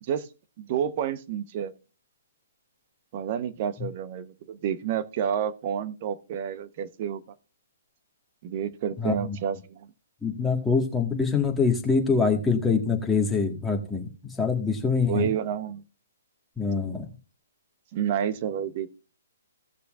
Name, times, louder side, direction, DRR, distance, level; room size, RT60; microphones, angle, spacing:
voice 1, 0.6-1.7 3.1-7.2 8.4-9.9 15.1-15.8 17.9-19.0, right 9 dB, 40° right, 13 dB, 0.9 m, -29 dB
voice 2, 9.0-9.4 10.2-15.3 16.6-17.0, left 5 dB, 5° left, 1 dB, 1.7 m, -25 dB
17.5 x 6.8 x 2.5 m, 0.33 s
hypercardioid pair, 150°, 0 cm